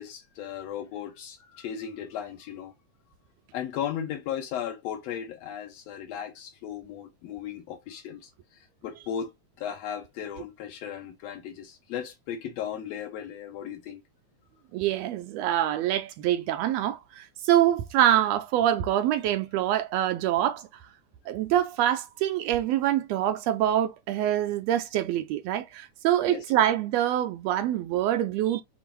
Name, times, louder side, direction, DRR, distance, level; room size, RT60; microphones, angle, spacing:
voice 1, 0.0-2.7 3.5-8.3 8.8-9.3 9.6-14.0 26.3-26.4, left 9 dB, 80° left, 1.5 m, -36 dB
voice 2, 14.7-20.7 21.3-28.6, right 12 dB, 90° right, 1.4 m, -25 dB
5.5 x 2.1 x 4.5 m
omnidirectional pair, 3.5 m